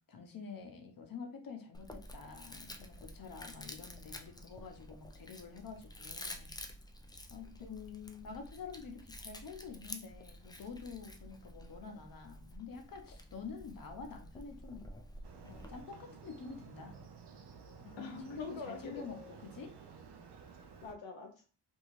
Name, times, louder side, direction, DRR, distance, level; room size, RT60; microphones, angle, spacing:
voice 1, 0.1-6.5 7.3-7.7 8.2-14.8 15.4-17.0 17.8-19.7, left 5 dB, 45° left, 4 dB, 0.8 m, -48 dB
Chewing mastication, 1.7-15.8, left 1 dB, 10° left, 0.3 m, -50 dB
voice 2, 7.6-8.4 18.0-19.1 20.8-21.3, left 5 dB, 70° left, 1 dB, 0.6 m, -45 dB
Motorcycle, 15.2-20.9, right 5 dB, 60° right, 0.5 m, -53 dB
2.6 x 2.3 x 3.1 m, 0.38 s
cardioid pair, 55°, 46 cm